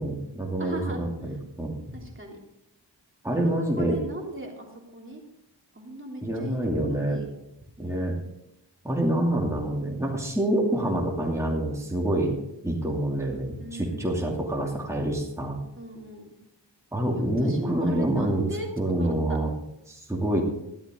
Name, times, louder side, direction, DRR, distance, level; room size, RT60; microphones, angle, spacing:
voice 1, 0.0-1.7 3.2-4.0 6.2-7.2 7.8-8.2 8.8-12.4 12.6-15.6 16.9-18.4 18.8-19.5 19.9-20.4, right 1 dB, 5° right, -2 dB, 2.9 m, -27 dB
voice 2, 0.6-1.4 1.9-2.4 3.3-5.2 5.7-7.3 7.8-8.2 13.6-14.1 15.8-16.3 17.1-19.4, right 1 dB, 30° right, -1 dB, 3.3 m, -38 dB
14.0 x 11.5 x 3.9 m, 0.84 s
cardioid pair, 50°, 42 cm